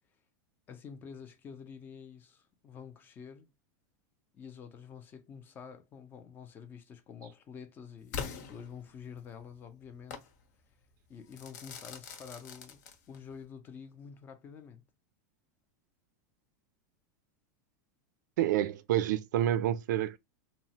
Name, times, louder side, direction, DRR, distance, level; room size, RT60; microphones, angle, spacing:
voice 1, 0.7-3.5 4.3-10.3 11.1-12.8 13.1-14.8, left 7 dB, 20° left, 0.4 m, -48 dB
Crackle / Fireworks, 8.1-9.3 10.1-10.3 11.3-13.3, left 6 dB, 65° left, 0.8 m, -42 dB
voice 2, 18.4-20.2, right 12 dB, 90° right, 0.4 m, -28 dB
2.9 x 2.0 x 2.7 m
supercardioid pair, 160°, 10 cm